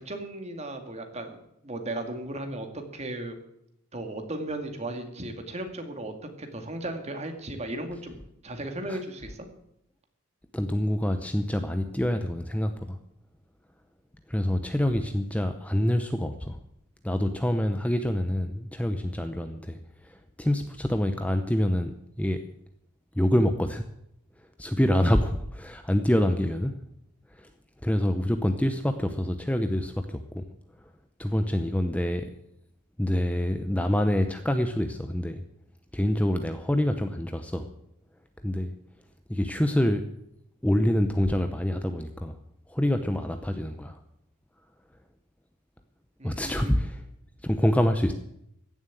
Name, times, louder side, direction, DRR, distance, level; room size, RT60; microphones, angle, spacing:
voice 1, 0.0-1.4 1.6-3.4 3.9-9.5 46.2-46.7, right 1 dB, 30° right, 5 dB, 2.1 m, -36 dB
voice 2, 10.5-13.0 14.3-16.6 17.0-22.4 23.1-23.8 24.6-26.7 27.3-27.5 27.8-30.5 30.8-30.9 31.2-32.3 33.0-35.4 35.9-37.7 38.4-38.7 39.3-40.0 40.6-42.4 42.7-44.0 46.2-47.0 47.4-48.1, left 1 dB, 5° left, 7 dB, 0.7 m, -26 dB
15.5 x 7.4 x 9.0 m, 0.78 s
head